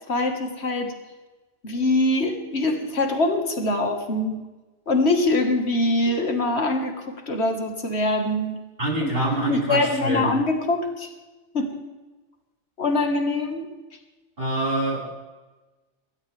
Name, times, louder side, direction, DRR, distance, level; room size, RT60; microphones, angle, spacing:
voice 1, 0.1-0.9 1.6-4.4 4.9-8.6 9.1-9.2 9.5-11.1 11.5-11.8 12.8-13.7, left 2 dB, 60° left, 4 dB, 2.2 m, -23 dB
voice 2, 8.8-10.3 14.4-15.2, right 1 dB, 50° right, -5 dB, 5.9 m, -25 dB
25.0 x 13.0 x 3.6 m, 1.2 s
omnidirectional pair, 1.2 m